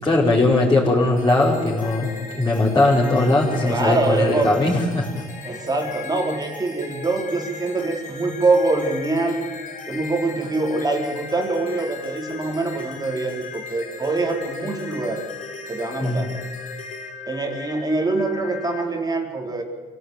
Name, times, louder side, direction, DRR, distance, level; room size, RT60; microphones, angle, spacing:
voice 1, 0.0-5.2 16.0-16.2, left 2 dB, 20° left, -7 dB, 5.3 m, -19 dB
sound 1, 1.2-18.8, left 5 dB, 50° left, 3.8 m, -38 dB
voice 2, 3.6-4.5 5.4-9.5 9.9-15.3 15.7-16.3 17.3-19.6, right 3 dB, 25° right, 2 dB, 3.7 m, -24 dB
25.0 x 17.5 x 9.4 m, 1.5 s
cardioid pair, 110°, 17 cm